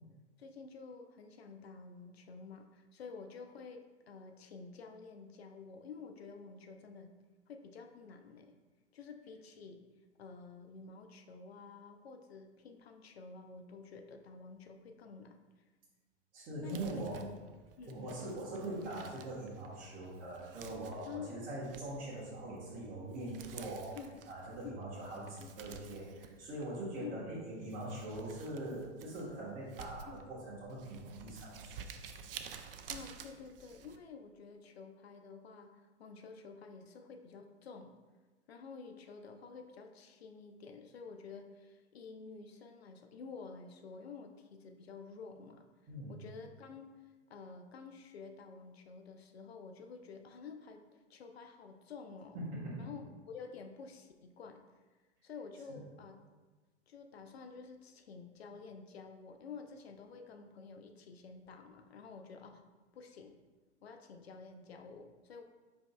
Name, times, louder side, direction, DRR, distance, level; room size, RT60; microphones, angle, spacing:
voice 1, 0.4-7.1 7.5-8.5 8.9-9.8 10.2-15.4 16.6-17.0 17.8-18.4 21.1-21.5 24.0-24.2 24.6-24.9 27.0-27.2 30.1-30.3 32.9-37.9 38.5-45.6 46.1-46.9 47.3-52.4 52.8-54.6 55.2-56.2 56.9-62.6 62.9-63.4 63.8-65.4, left 5 dB, 60° left, 5 dB, 0.6 m, -50 dB
voice 2, 16.3-17.2 17.9-24.0 24.3-31.8 45.9-46.2 52.3-52.9 55.7-55.8, right 1 dB, 25° right, -7 dB, 1.0 m, -42 dB
Crumpling crinkling, 16.6-34.0, right 6 dB, 55° right, 0.4 m, -53 dB
5.1 x 4.6 x 2.2 m, 1.3 s
figure-of-eight pair, 105°, 36 cm